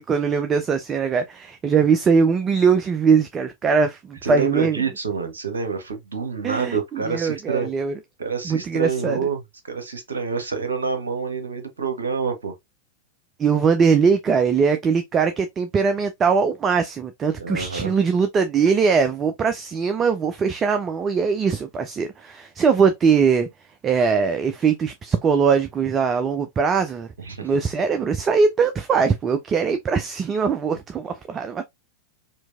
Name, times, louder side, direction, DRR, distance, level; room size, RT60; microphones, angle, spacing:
voice 1, 0.0-4.8 6.4-7.9 8.4-9.2 13.4-23.5 23.8-27.1 27.4-31.6, right 5 dB, 25° right, 0.4 m, -21 dB
voice 2, 4.2-7.7 8.2-12.5 17.4-17.9 27.2-27.6, right 5 dB, 70° right, 0.9 m, -27 dB
4.4 x 2.7 x 2.4 m
figure-of-eight pair, 90°, 0 cm